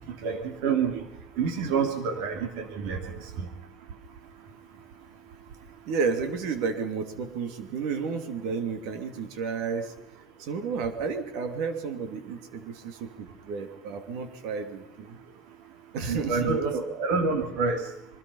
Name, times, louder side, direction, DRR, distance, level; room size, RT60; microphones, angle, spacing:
voice 1, 0.2-1.0 1.4-3.0 3.4-3.5 16.1-17.8, right 5 dB, 85° right, 6 dB, 2.8 m, -27 dB
voice 2, 5.9-9.9 10.4-15.2 15.9-17.1, right 5 dB, 65° right, 7 dB, 2.9 m, -32 dB
27.5 x 24.5 x 5.7 m, 0.83 s
cardioid pair, 180°, 0 cm